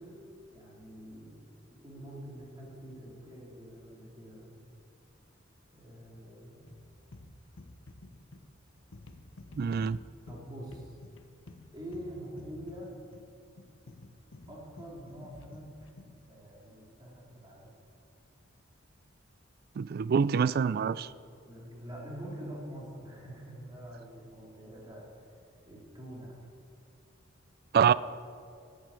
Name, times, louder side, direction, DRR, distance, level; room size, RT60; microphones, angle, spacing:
voice 1, 0.0-4.5 5.7-6.7 10.3-11.0 11.7-12.9 14.5-15.7 16.3-17.7 21.5-25.0 25.7-26.4, right 1 dB, 20° right, -3 dB, 3.2 m, -45 dB
sound 1, 6.7-16.2, left 2 dB, 85° left, 1.0 m, -52 dB
voice 2, 9.6-10.0 19.8-21.1 27.7-27.9, right 6 dB, 50° right, 18 dB, 0.3 m, -25 dB
11.5 x 9.4 x 8.9 m, 2.5 s
head